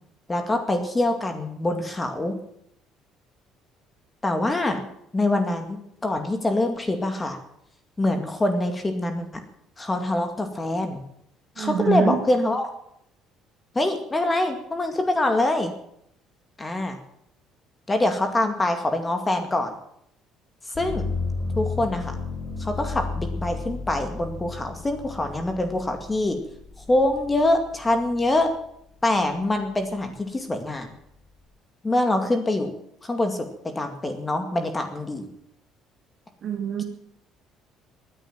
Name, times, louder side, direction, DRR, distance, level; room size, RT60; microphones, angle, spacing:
voice 1, 0.3-2.4 4.2-4.8 5.1-7.4 8.0-9.4 9.8-11.0 11.6-12.7 13.7-15.7 16.6-17.0 17.9-19.7 20.7-21.1 21.6-22.1 22.6-26.4 26.9-28.5 29.0-30.9 31.8-32.7 33.0-35.3, left 1 dB, 15° left, 6 dB, 2.2 m, -24 dB
voice 2, 11.6-12.2 36.4-36.8, right 7 dB, 50° right, 3 dB, 1.6 m, -24 dB
sound 1, 20.7-28.6 29.0-29.8, left 4 dB, 50° left, 6.3 m, -33 dB
18.5 x 10.0 x 7.5 m, 0.74 s
cardioid pair, 120°, 0 cm